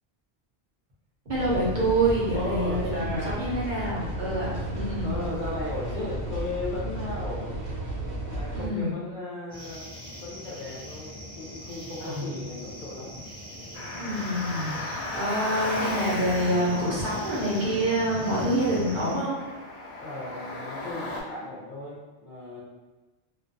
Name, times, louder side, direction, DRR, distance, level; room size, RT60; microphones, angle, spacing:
voice 1, 1.3-5.2 8.5-8.9 12.0-12.4 14.0-19.5, right 1 dB, 50° right, -6 dB, 0.8 m, -27 dB
sound 1, 1.3-8.7, right 1 dB, 85° right, 0.9 m, -33 dB
voice 2, 2.3-3.4 5.0-7.5 8.2-9.9 10.2-13.2 20.0-22.6, left 2 dB, 55° left, -4 dB, 0.6 m, -36 dB
sound 2, 9.5-19.1, left 1 dB, 5° left, 0.4 m, -40 dB
Car, 13.7-21.2, left 2 dB, 85° left, 0.9 m, -36 dB
2.4 x 2.2 x 2.6 m, 1.2 s
omnidirectional pair, 1.1 m